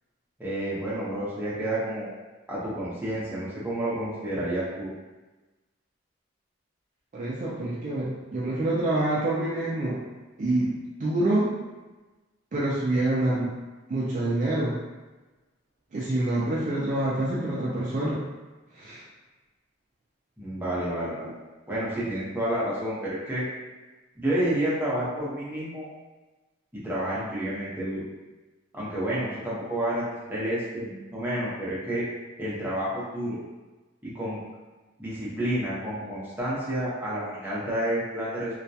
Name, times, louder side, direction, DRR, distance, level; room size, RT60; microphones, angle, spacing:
voice 1, 0.4-2.1 2.5-4.9 20.4-21.3 21.7-23.4 24.2-25.9 26.7-28.0 28.7-32.0 32.4-33.4 34.1-34.4 35.0-38.5, right 1 dB, 10° right, -9 dB, 0.7 m, -30 dB
voice 2, 7.1-10.0 10.4-10.7 11.0-11.5 12.5-13.5 13.9-14.7 15.9-18.2 18.7-19.0, right 1 dB, 40° right, -7 dB, 0.3 m, -26 dB
2.3 x 2.1 x 2.6 m, 1.2 s
head